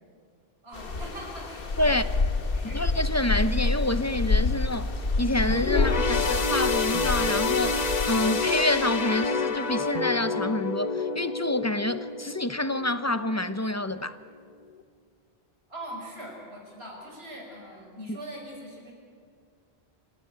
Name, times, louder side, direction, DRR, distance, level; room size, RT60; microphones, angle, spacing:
voice 1, 0.6-2.0 2.5-2.8 15.7-18.9, equal, 75° right, 5.4 m, -41 dB
sound 1, 0.7-8.2, left 3 dB, 60° left, 1.5 m, -28 dB
voice 2, 2.6-14.2, left 1 dB, 20° left, 0.6 m, -28 dB
sound 2, 4.7-4.8 5.5-5.6 6.3-6.4 6.9-7.1 7.7-7.8 8.5-8.6 9.2-9.4 9.9-10.1, equal, 35° right, 5.3 m, -38 dB
sound 3, 5.6-13.3 13.7-13.9 14.8-14.9, left 4 dB, 40° left, 1.1 m, -28 dB
25.5 x 16.5 x 9.5 m
omnidirectional pair, 1.1 m